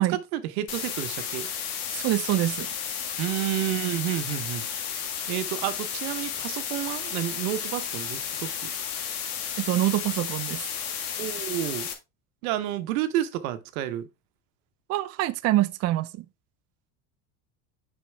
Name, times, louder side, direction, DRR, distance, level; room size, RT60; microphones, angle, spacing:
voice 1, 0.0-1.5 3.2-5.0 5.3-8.7 11.2-11.9 12.4-14.1, right 13 dB, 90° right, 1.0 m, -30 dB
sound 1, 0.7-11.9, left 8 dB, 85° left, 1.8 m, -33 dB
voice 2, 1.9-2.7 9.6-10.6 14.9-16.2, right 15 dB, 40° right, 0.5 m, -25 dB
6.5 x 5.5 x 3.4 m
supercardioid pair, 125°, 42 cm